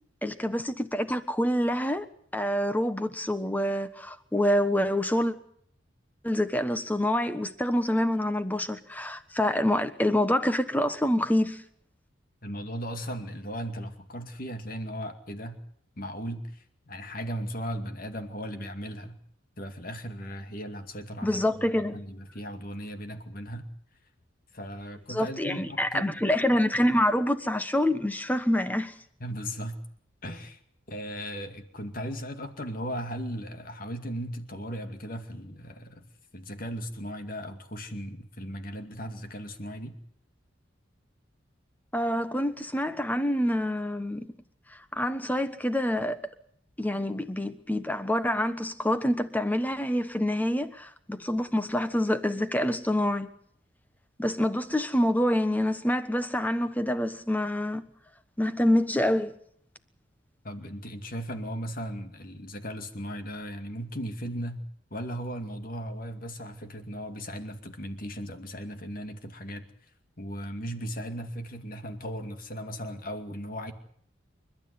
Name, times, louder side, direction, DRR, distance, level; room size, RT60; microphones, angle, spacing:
voice 1, 0.2-2.1 2.3-5.3 6.2-11.6 21.2-22.0 25.1-28.9 41.9-44.3 44.9-46.2 46.8-53.3 54.2-57.8 58.4-59.3, left 1 dB, 10° left, 1.2 m, -26 dB
voice 2, 12.4-15.6 16.0-19.2 19.6-21.4 21.7-23.7 24.5-26.2 29.2-29.8 30.2-30.6 30.9-36.1 36.3-39.9 60.4-64.6 64.9-69.6 70.2-73.7, equal, 45° left, 2.3 m, -37 dB
29.0 x 12.5 x 9.6 m
head